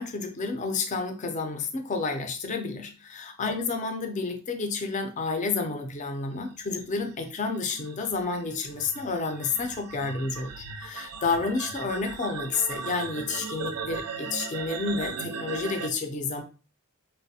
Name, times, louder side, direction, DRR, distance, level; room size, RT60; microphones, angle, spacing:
voice 1, 0.0-16.4, left 4 dB, 35° left, 5 dB, 0.4 m, -30 dB
sound 1, 6.6-15.9, right 5 dB, 85° right, 0.4 m, -38 dB
3.1 x 2.0 x 2.7 m, 0.34 s
head